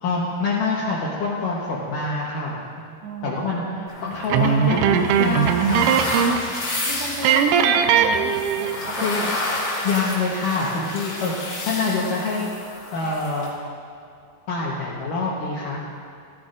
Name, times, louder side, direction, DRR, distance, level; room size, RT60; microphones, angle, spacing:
voice 1, 0.0-2.9 3.2-5.9 9.0-9.3 9.8-11.3 11.7-12.5 12.9-13.5 14.5-15.8, left 3 dB, 75° left, -5 dB, 2.0 m, -25 dB
voice 2, 3.0-3.9 6.9-8.7 9.0-9.3, right 2 dB, 65° right, -4 dB, 2.7 m, -33 dB
sound 1, 3.9-13.5, left 2 dB, 35° left, 2.5 m, -31 dB
sound 2, 4.3-6.5 6.8-6.9 7.2-8.9, right 8 dB, 90° right, 3.2 m, -19 dB
15.5 x 15.0 x 2.6 m, 2.4 s
omnidirectional pair, 5.5 m